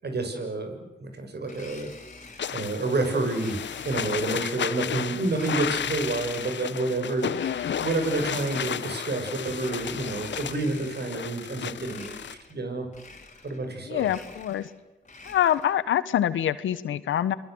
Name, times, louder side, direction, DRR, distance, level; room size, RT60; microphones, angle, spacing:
voice 1, 0.0-0.7 1.0-1.9 2.5-7.3 7.8-12.9 13.4-14.1, right 2 dB, 55° right, 6 dB, 6.5 m, -29 dB
Domestic sounds home sounds, 1.4-2.8 3.3-4.7 5.2-6.8 7.2-9.0 9.4-11.2 11.8-12.6 12.9-13.7 13.9-15.8, left 3 dB, 40° left, 4.8 m, -47 dB
sound 1, 2.4-12.3, left 9 dB, 65° left, 0.9 m, -33 dB
voice 2, 13.9-14.7 15.2-17.3, left 11 dB, 85° left, 16 dB, 1.2 m, -25 dB
28.5 x 21.0 x 7.9 m, 1.0 s
supercardioid pair, 40°, 20 cm